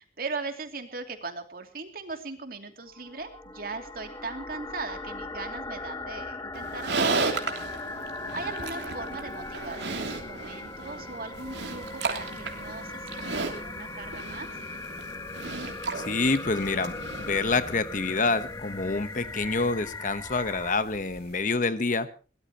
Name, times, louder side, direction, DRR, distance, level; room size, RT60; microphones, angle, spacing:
voice 1, 0.0-7.6 8.3-14.5, right 3 dB, 55° right, 6 dB, 2.8 m, -39 dB
sound 1, 2.9-20.7, left 3 dB, 20° left, 1.1 m, -39 dB
Livestock farm animals working animals, 6.5-17.8, right 4 dB, 90° right, 3.0 m, -34 dB
sound 2, 11.3-21.4, right 1 dB, 70° right, 3.5 m, -51 dB
voice 2, 16.0-22.1, left 3 dB, 45° left, 12 dB, 1.1 m, -27 dB
22.5 x 18.5 x 3.0 m, 0.35 s
head